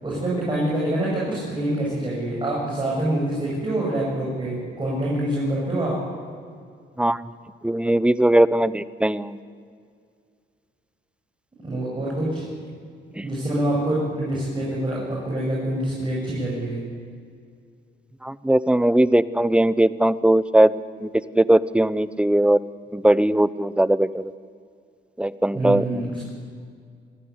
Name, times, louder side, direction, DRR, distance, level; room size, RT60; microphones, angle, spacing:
voice 1, 0.0-5.9 11.6-12.4 13.2-16.8 25.5-26.3, right 1 dB, 25° right, -5 dB, 7.9 m, -26 dB
voice 2, 7.6-9.4 13.2-13.3 18.2-20.7 21.0-21.1 21.3-22.6 22.9-24.3 25.2-26.1, right 1 dB, 5° right, 16 dB, 0.8 m, -19 dB
25.0 x 15.0 x 9.7 m, 2.2 s
cardioid pair, 90°, 20 cm